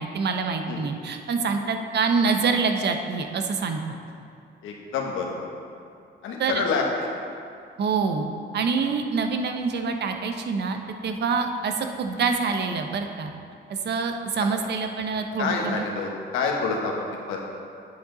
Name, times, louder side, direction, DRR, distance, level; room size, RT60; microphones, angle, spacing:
voice 1, 0.0-3.8 6.4-6.6 7.8-8.3 8.5-13.3 13.8-15.8, right 5 dB, 60° right, 5 dB, 0.8 m, -26 dB
voice 2, 4.6-5.4 6.2-6.8 15.4-17.4, left 5 dB, 90° left, 0 dB, 1.2 m, -27 dB
8.3 x 7.6 x 3.9 m, 2.5 s
cardioid pair, 90°, 20 cm